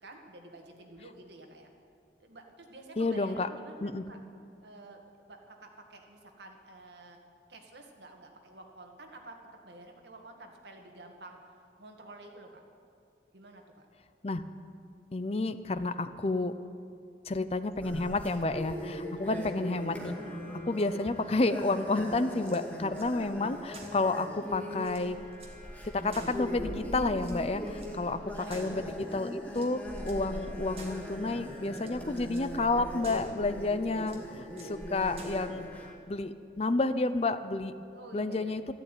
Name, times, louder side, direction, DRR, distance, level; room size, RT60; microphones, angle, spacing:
voice 1, 0.0-1.7 2.2-4.2 4.6-7.2 7.5-9.4 9.6-11.4 11.8-12.6 13.3-13.9 19.1-19.6 27.9-28.8 29.1-29.2 37.9-38.5, right 2 dB, 75° right, 3 dB, 1.9 m, -50 dB
voice 2, 3.0-3.5 3.8-4.0 14.2-14.4 15.1-16.5 17.3-20.4 20.7-25.2 25.9-28.2 28.5-37.7 38.1-38.7, left 2 dB, 35° left, 12 dB, 0.5 m, -30 dB
sound 1, 17.8-35.9, left 1 dB, 10° left, 2.0 m, -40 dB
sound 2, 22.4-23.1 23.7-24.1 24.5-24.6 24.8-25.6 26.1-26.8 27.1-27.9 28.5-29.1 29.5-30.3 30.8-31.1 31.6-32.0 32.3-32.5 33.0-33.4 34.0-34.8 35.2-35.5, right 3 dB, 35° right, 1.8 m, -51 dB
13.5 x 12.0 x 9.1 m, 2.5 s
head